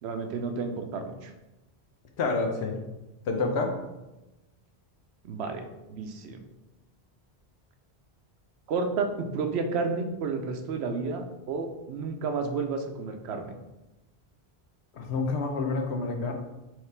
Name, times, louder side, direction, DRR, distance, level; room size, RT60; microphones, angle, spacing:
voice 1, 0.0-1.3 5.2-6.4 8.7-13.5, right 4 dB, 90° right, 6 dB, 0.9 m, -31 dB
voice 2, 2.2-2.8 3.3-3.7 14.9-16.3, left 3 dB, 85° left, 3 dB, 1.0 m, -28 dB
4.7 x 3.2 x 3.2 m, 1.0 s
omnidirectional pair, 1.1 m